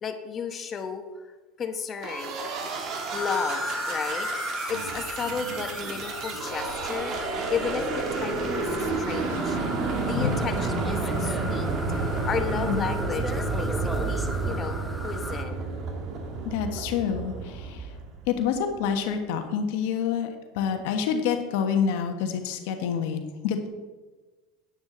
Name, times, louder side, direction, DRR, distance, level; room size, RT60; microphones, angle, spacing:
voice 1, 0.0-2.4 3.1-4.3 4.7-9.6 10.0-11.7 12.2-14.8 15.0-15.7, left 6 dB, 30° left, 7 dB, 1.0 m, -33 dB
sound 1, 2.0-18.6, right 3 dB, 45° right, 1.5 m, -31 dB
sound 2, 3.1-15.4, left 1 dB, ahead, 0.9 m, -36 dB
sound 3, 4.7-12.7, right 1 dB, 80° right, 3.3 m, -42 dB
voice 2, 12.5-12.9 16.4-17.9 18.3-23.7, left 7 dB, 75° left, 6 dB, 1.2 m, -27 dB
9.7 x 9.3 x 3.8 m, 1.3 s
supercardioid pair, 125°, 0 cm